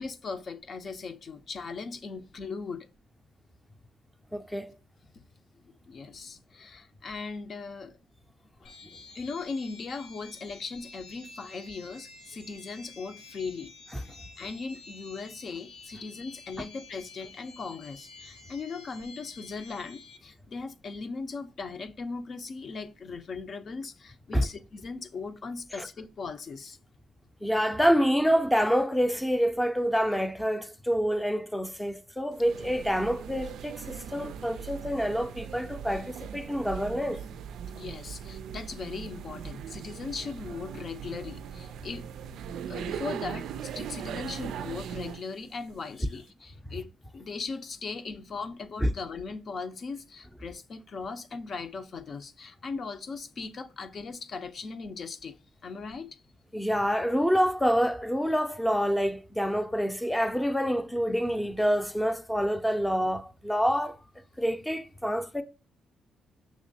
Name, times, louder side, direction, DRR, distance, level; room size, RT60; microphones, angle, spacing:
voice 1, 0.0-2.9 5.1-5.2 5.6-8.0 8.6-8.7 9.1-13.7 14.1-26.8 37.7-42.1 42.7-55.4 55.6-56.2, left 4 dB, 50° left, 0.7 m, -39 dB
voice 2, 4.3-4.7 24.3-24.5 25.8-25.9 27.4-37.2 48.8-48.9 56.5-64.0 64.4-65.4, equal, 5° left, 0.6 m, -27 dB
sound 1, 8.6-20.2, left 3 dB, 80° left, 1.1 m, -50 dB
sound 2, 32.3-45.3, right 8 dB, 80° right, 0.3 m, -39 dB
6.3 x 3.0 x 2.7 m
cardioid pair, 90°, 0 cm